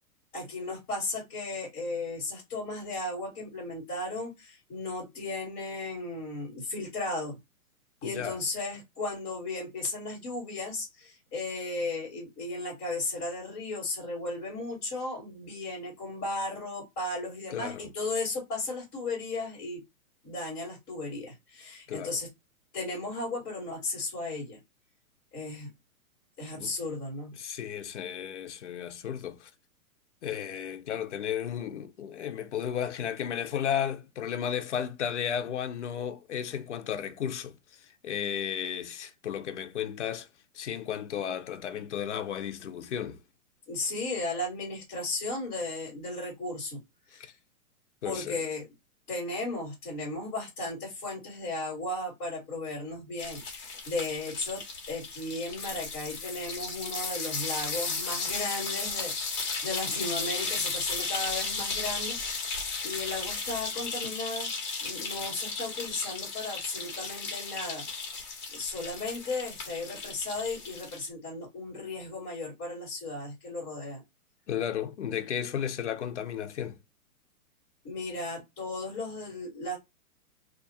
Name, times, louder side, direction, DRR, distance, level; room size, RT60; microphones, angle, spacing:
voice 1, 0.3-7.4 8.0-19.8 20.2-22.3 22.7-24.6 25.3-25.7 26.4-27.3 43.7-46.8 47.1-47.3 48.0-48.7 49.1-54.6 54.9-62.4 62.8-64.5 64.8-67.8 68.5-74.0 77.8-79.8, left 2 dB, 15° left, 1.3 m, -35 dB
voice 2, 8.0-8.4 17.5-17.9 21.9-22.2 26.5-26.7 27.4-29.5 30.2-37.6 37.8-40.3 40.5-43.2 47.1-47.3 48.0-48.4 74.5-76.8, left 9 dB, 50° left, 0.6 m, -34 dB
sound 1, 53.2-71.1, left 4 dB, 30° left, 1.1 m, -35 dB
2.8 x 2.4 x 4.0 m
hypercardioid pair, 175°, 44 cm